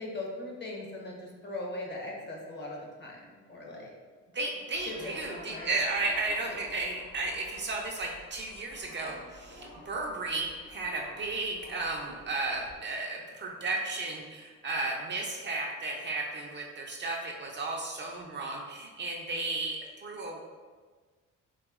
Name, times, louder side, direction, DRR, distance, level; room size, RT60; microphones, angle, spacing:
voice 1, 0.0-3.9 4.9-5.7, left 2 dB, 35° left, -1 dB, 0.8 m, -40 dB
voice 2, 4.3-20.4, right 3 dB, 35° right, 0 dB, 0.5 m, -34 dB
sound 1, 4.7-12.8, left 1 dB, 55° left, 1.1 m, -51 dB
3.9 x 2.5 x 2.3 m, 1.4 s
cardioid pair, 90°, 30 cm